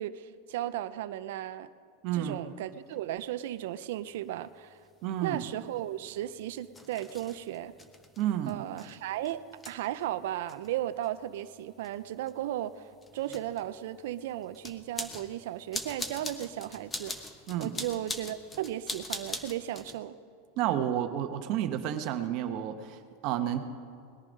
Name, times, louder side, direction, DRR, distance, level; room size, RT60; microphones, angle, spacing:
voice 1, 0.0-1.7 2.1-4.8 5.2-7.7 8.5-9.4 9.7-12.9 13.1-17.3 17.6-20.2, right 12 dB, 75° right, 12 dB, 0.5 m, -35 dB
voice 2, 2.0-2.4 5.0-5.4 8.2-8.6 17.5-17.8 20.6-23.6, right 11 dB, 55° right, 8 dB, 1.1 m, -31 dB
sound 1, 2.9-3.0 3.7-3.9 4.9-20.0, left 2 dB, 15° left, 1.2 m, -43 dB
19.5 x 10.5 x 5.2 m, 2.3 s
supercardioid pair, 130°, 0 cm